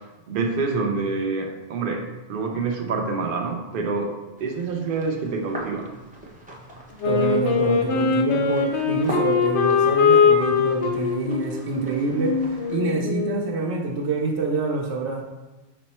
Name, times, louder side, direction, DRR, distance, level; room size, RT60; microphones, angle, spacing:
voice 1, 0.3-4.1 4.4-5.9, right 4 dB, 60° right, 3 dB, 0.7 m, -27 dB
sound 1, 4.4-12.8, right 1 dB, 10° right, 0.6 m, -41 dB
Wind instrument woodwind instrument, 7.0-13.6, left 5 dB, 85° left, 0.9 m, -22 dB
voice 2, 7.0-15.2, right 3 dB, 80° right, -1 dB, 1.0 m, -26 dB
5.3 x 2.1 x 4.1 m, 1.1 s
omnidirectional pair, 1.1 m